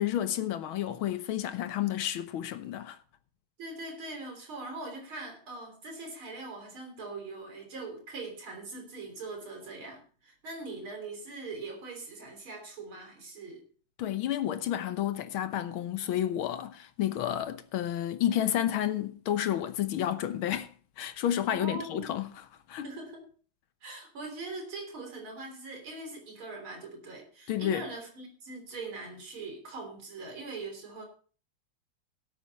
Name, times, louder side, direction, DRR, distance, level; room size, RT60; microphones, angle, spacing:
voice 1, 0.0-3.0 14.0-20.7 21.0-22.3 22.7-22.9 27.5-27.8, left 11 dB, 85° left, 1.8 m, -30 dB
voice 2, 3.6-13.6 21.5-22.1 22.8-23.3 23.8-31.0, right 3 dB, 85° right, 4.2 m, -41 dB
17.5 x 8.2 x 4.1 m
omnidirectional pair, 2.2 m